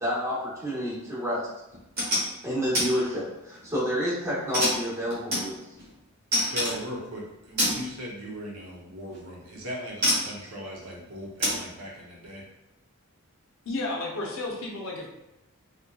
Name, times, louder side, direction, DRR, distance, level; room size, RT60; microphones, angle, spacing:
voice 1, 0.0-1.5 2.4-5.6, equal, 15° right, -8 dB, 0.9 m, -29 dB
sound 1, 1.7-2.3 2.7-2.9 3.3-3.8 4.5-5.9 6.3-6.8 7.6-7.8 9.1-9.2 10.0-10.3 11.4-11.6, equal, 45° right, 1.1 m, -26 dB
voice 2, 6.5-12.4, equal, 90° right, -3 dB, 0.7 m, -38 dB
voice 3, 13.6-15.1, left 2 dB, 65° left, -1 dB, 0.5 m, -32 dB
2.7 x 2.1 x 2.2 m, 0.93 s
head